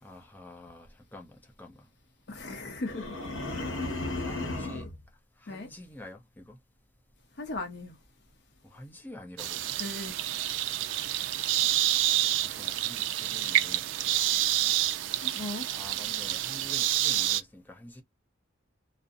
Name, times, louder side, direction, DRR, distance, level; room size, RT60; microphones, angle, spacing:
voice 1, 0.0-1.9 4.2-4.9 5.4-6.6 8.6-9.7 12.4-13.9 15.7-18.0, left 1 dB, 10° left, 0.6 m, -47 dB
voice 2, 2.3-3.1 5.5-5.7 7.4-7.9 9.8-10.2 15.2-15.7, left 2 dB, 60° left, 0.7 m, -37 dB
sound 1, 2.8-5.0, left 2 dB, 75° left, 1.0 m, -34 dB
sound 2, 9.4-17.4, right 13 dB, 70° right, 0.3 m, -28 dB
2.5 x 2.0 x 2.5 m
head